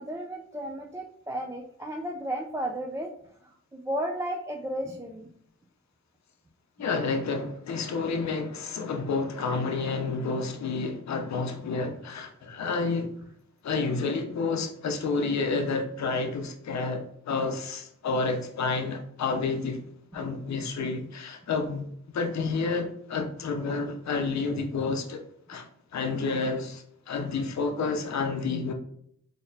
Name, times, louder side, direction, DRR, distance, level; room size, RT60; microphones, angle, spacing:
voice 1, 0.0-3.1 3.4-5.3 20.2-20.3, right 1 dB, 10° right, 0.4 m, -34 dB
voice 2, 6.8-13.1 13.6-19.8 20.1-21.9 22.1-25.2 25.5-25.7 25.9-28.7, left 4 dB, 55° left, 0.7 m, -30 dB
4.0 x 2.8 x 2.7 m
cardioid pair, 65°, 33 cm